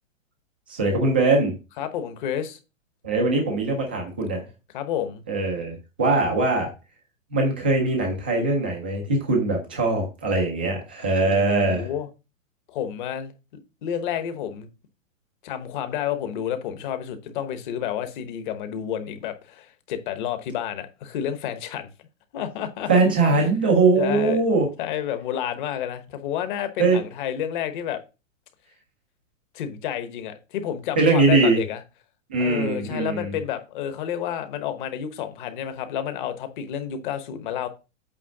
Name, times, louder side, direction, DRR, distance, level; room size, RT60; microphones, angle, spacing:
voice 1, 0.7-1.5 3.0-4.5 5.3-6.7 7.3-11.9 22.9-24.7 26.8-27.0 31.0-31.6 32.3-33.3, right 3 dB, 10° right, 0.3 m, -21 dB
voice 2, 1.8-2.6 4.7-5.2 11.2-12.1 12.7-13.3 13.8-14.7 15.4-21.9 22.3-22.9 23.3-23.5 24.0-24.4 24.8-28.0 29.5-31.8 32.4-37.7, left 9 dB, 40° left, 1.1 m, -30 dB
8.4 x 3.1 x 5.9 m
hypercardioid pair, 160°, 40 cm